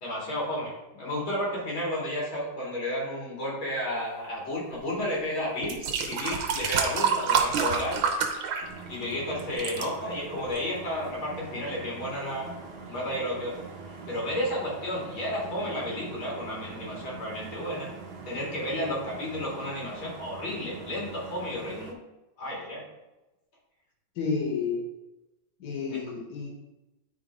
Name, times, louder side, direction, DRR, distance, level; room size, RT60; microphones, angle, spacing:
voice 1, 0.0-8.0 8.9-12.5 12.8-13.6 14.1-17.9 18.2-22.0 22.4-22.9 25.9-26.0, left 1 dB, 90° left, -4 dB, 3.4 m, -32 dB
sound 1, 5.0-5.1 5.6-9.1 9.4-9.9 10.6-10.7, right 6 dB, 90° right, 1.6 m, -27 dB
sound 2, 8.6-21.9, right 4 dB, 70° right, 0.5 m, -43 dB
voice 2, 24.2-24.8 25.6-26.5, left 5 dB, 55° left, -1 dB, 1.9 m, -30 dB
9.0 x 3.6 x 4.7 m, 1.0 s
omnidirectional pair, 2.2 m